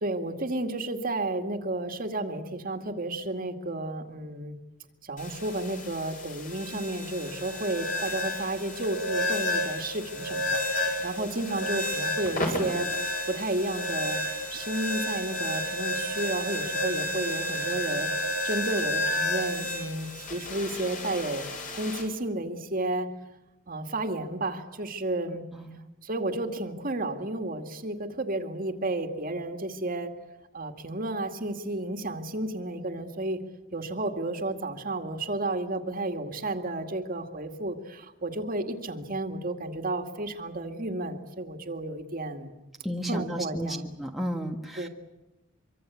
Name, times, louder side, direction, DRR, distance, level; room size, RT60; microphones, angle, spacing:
voice 1, 0.0-4.6 5.0-12.9 13.3-14.2 14.5-18.1 18.4-21.5 21.7-23.1 23.7-25.4 26.0-30.1 30.5-33.5 33.7-42.5 43.1-44.0 44.8-44.9, right 2 dB, 45° right, 5 dB, 2.2 m, -32 dB
sound 1, 5.2-22.0, left 1 dB, 40° left, 7.0 m, -31 dB
voice 2, 42.8-44.9, equal, ahead, 0 dB, 1.6 m, -33 dB
25.0 x 24.5 x 8.5 m, 0.99 s
head